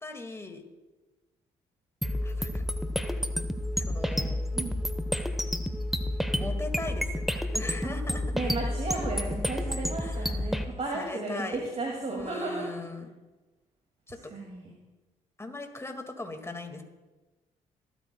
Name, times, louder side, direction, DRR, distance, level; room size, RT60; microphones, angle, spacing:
voice 1, 0.0-0.6 2.2-2.6 3.8-4.4 6.4-7.2 7.5-8.2 10.0-10.4 10.9-11.7 12.1-13.1 14.1-14.3 15.4-16.8, left 2 dB, 15° left, 5 dB, 1.9 m, -39 dB
sound 1, 2.0-10.6, left 1 dB, ahead, 1.0 m, -30 dB
voice 2, 8.3-12.7 14.3-14.7, right 2 dB, 40° right, -1 dB, 2.2 m, -34 dB
25.0 x 9.2 x 2.3 m, 1.2 s
hypercardioid pair, 50°, 16 cm